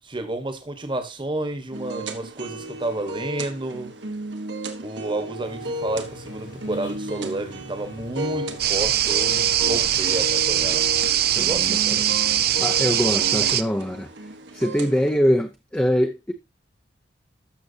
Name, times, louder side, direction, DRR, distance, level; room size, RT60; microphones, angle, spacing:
voice 1, 0.0-3.9 4.8-10.9 11.3-12.1, right 2 dB, 25° right, 1.3 m, -31 dB
sound 1, 1.7-15.1, right 1 dB, 80° right, 1.3 m, -34 dB
sound 2, 5.4-10.8, equal, 80° left, 4.2 m, -45 dB
sound 3, 8.6-13.6, right 11 dB, 55° right, 0.5 m, -21 dB
voice 2, 11.4-12.0 12.6-14.1 14.5-16.3, equal, 5° left, 0.6 m, -23 dB
13.0 x 6.0 x 2.8 m
head